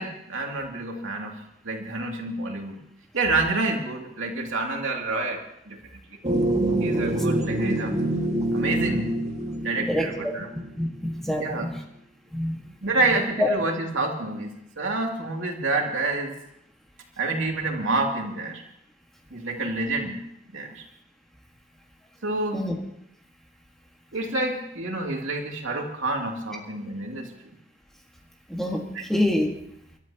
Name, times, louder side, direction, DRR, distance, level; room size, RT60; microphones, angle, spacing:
voice 1, 0.0-2.8 3.1-5.8 6.8-7.9 8.5-9.2 9.6-10.5 11.4-11.8 12.8-16.3 17.2-18.6 19.3-20.2 20.5-20.8 22.2-22.7 24.1-27.3 28.9-29.0, right 2 dB, 90° right, 0 dB, 2.7 m, -28 dB
sound 1, 6.2-10.9, right 1 dB, 35° right, 1.9 m, -26 dB
voice 2, 9.9-10.3 10.8-11.7 12.3-12.6 13.4-13.5 22.5-22.8 28.5-28.8 29.1-29.5, left 1 dB, ahead, 0 dB, 1.7 m, -26 dB
30.0 x 12.5 x 3.0 m, 0.76 s
head